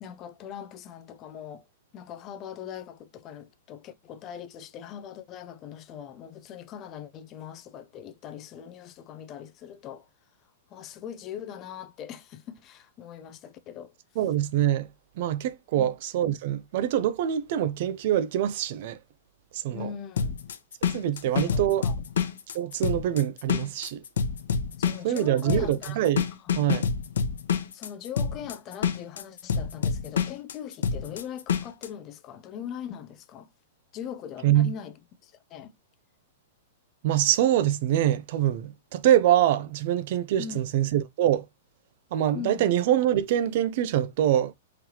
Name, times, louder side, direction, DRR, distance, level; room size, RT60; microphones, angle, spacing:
voice 1, 0.0-1.6 1.9-10.1 10.7-13.9 15.8-15.9 19.7-20.4 21.2-22.0 24.8-26.0 27.7-33.5 33.9-35.0 35.2-35.7 40.4-40.6 42.3-42.7, left 9 dB, 25° left, 0.4 m, -41 dB
voice 2, 14.2-14.9 15.2-19.0 19.5-19.9 20.9-21.9 22.5-24.0 25.0-26.3 26.5-26.9 34.4-34.7 37.0-41.5 42.1-44.5, right 11 dB, 45° right, 0.4 m, -24 dB
sound 1, 20.2-31.9, left 6 dB, 85° left, 0.7 m, -27 dB
3.8 x 3.1 x 2.8 m
supercardioid pair, 165°, 0 cm